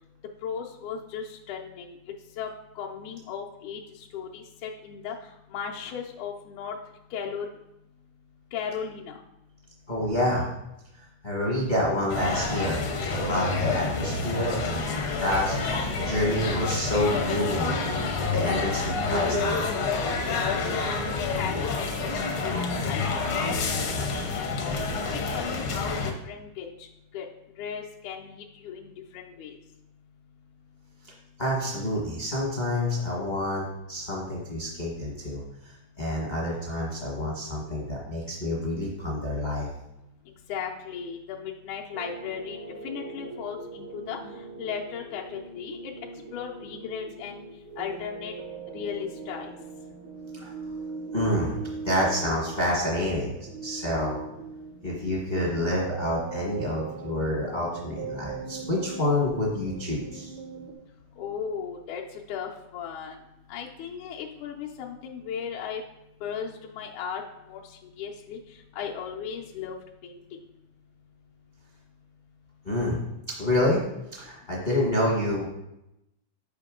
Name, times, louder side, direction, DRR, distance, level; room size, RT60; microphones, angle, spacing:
voice 1, 0.4-2.0 2.4-2.5 2.8-6.8 7.1-7.5 8.5-9.2 20.2-20.8 21.3-22.1 22.4-24.8 25.1-26.0 26.3-26.9 27.1-27.3 27.6-29.6 40.5-42.6 42.8-44.2 44.6-45.9 46.3-47.5 47.8-48.3 48.7-49.5 61.2-63.2 63.5-65.8 66.2-67.2 67.5-69.8 70.0-70.4, left 7 dB, 90° left, -1 dB, 2.1 m, -36 dB
voice 2, 9.9-10.5 11.2-15.6 16.0-17.8 18.3-19.6 31.0-31.1 31.4-35.4 35.6-39.7 50.3-50.5 51.1-51.6 51.8-53.3 53.6-54.2 54.8-60.3 72.6-73.0 73.4-73.8 74.1-75.5, left 1 dB, 45° left, -5 dB, 0.6 m, -28 dB
sound 1, 12.1-26.1, left 4 dB, 70° left, 1.2 m, -28 dB
sound 2, 41.9-60.7, right 4 dB, 75° right, 1.2 m, -40 dB
6.7 x 5.2 x 3.7 m, 0.87 s
omnidirectional pair, 3.3 m